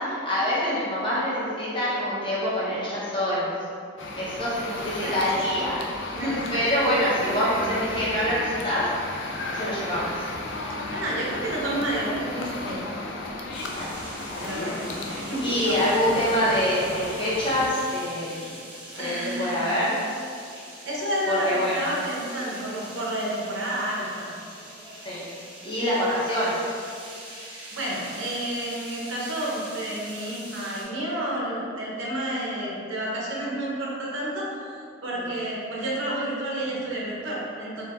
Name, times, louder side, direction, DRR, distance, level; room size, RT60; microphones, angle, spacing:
voice 1, 0.1-3.5 4.2-5.8 6.1-8.8 9.5-10.1 13.7-13.9 14.3-18.6 19.0-20.0 21.3-21.9 24.9-25.2 25.6-26.6 35.1-35.3, equal, 25° left, -9 dB, 1.0 m, -26 dB
sound 1, 4.0-17.7, left 2 dB, 70° left, 0.4 m, -34 dB
voice 2, 6.2-7.5 10.9-12.8 14.4-15.5 18.9-19.8 20.8-24.3 27.7-37.8, right 1 dB, 85° right, -4 dB, 0.8 m, -30 dB
sound 2, 13.5-30.8, right 1 dB, 25° right, 0.8 m, -43 dB
4.5 x 2.5 x 2.5 m, 2.4 s
head